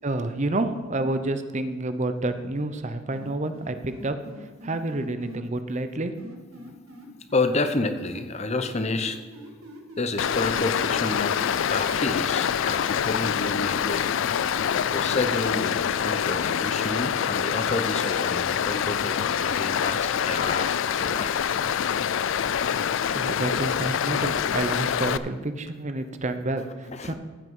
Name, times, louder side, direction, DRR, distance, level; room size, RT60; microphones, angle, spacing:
voice 1, 0.0-4.2 4.6-6.1 23.1-27.1, right 2 dB, 35° right, 9 dB, 0.7 m, -29 dB
sound 1, 3.1-5.4 6.2-8.2 8.5-12.1, right 1 dB, 90° right, 1.8 m, -44 dB
voice 2, 6.6-9.2 10.0-14.0 14.9-20.7 21.0-21.5 26.9-27.1, left 3 dB, 30° left, 9 dB, 0.7 m, -30 dB
Stream, 10.2-25.2, left 8 dB, 65° left, 0.4 m, -25 dB
15.0 x 5.9 x 5.4 m, 1.4 s
head